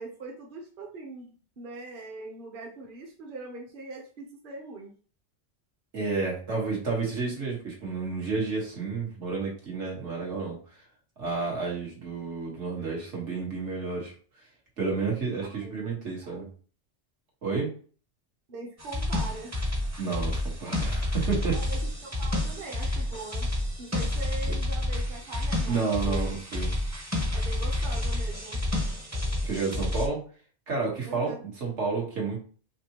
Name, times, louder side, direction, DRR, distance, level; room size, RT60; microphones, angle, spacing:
voice 1, 0.0-4.9 15.4-16.5 18.5-19.5 21.5-23.5 23.8-26.4 27.3-28.6 31.0-31.4, right 3 dB, 50° right, 0 dB, 1.0 m, -42 dB
voice 2, 5.9-10.6 11.2-14.1 14.8-16.5 17.4-17.7 20.0-21.6 25.7-26.7 29.4-30.2 30.7-32.4, right 4 dB, 80° right, -3 dB, 1.8 m, -30 dB
sound 1, 18.8-30.1, left 1 dB, 20° right, 0.6 m, -29 dB
5.1 x 2.7 x 2.9 m, 0.40 s
omnidirectional pair, 1.2 m